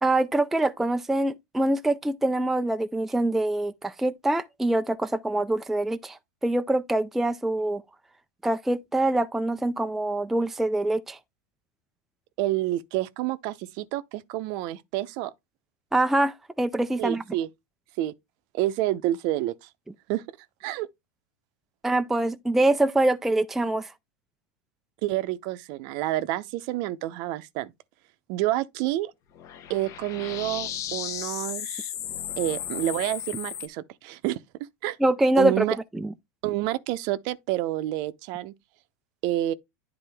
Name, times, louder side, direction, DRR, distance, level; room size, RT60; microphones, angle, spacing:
voice 1, 0.0-7.8 8.4-11.2 15.9-17.2 21.8-23.9 35.0-35.6 35.9-36.1, right 2 dB, 5° right, 0.3 m, -24 dB
voice 2, 12.4-15.3 17.0-17.5 18.0-18.1 18.5-19.7 20.1-20.2 20.6-20.9 25.0-27.7 28.3-29.1 29.7-31.9 32.4-34.4 34.8-35.0 35.4-35.8 36.4-38.5 39.2-39.5, right 15 dB, 50° right, 0.6 m, -28 dB
sound 1, 29.4-33.7, left 10 dB, 35° left, 0.9 m, -35 dB
9.9 x 3.7 x 3.4 m
supercardioid pair, 135°, 9 cm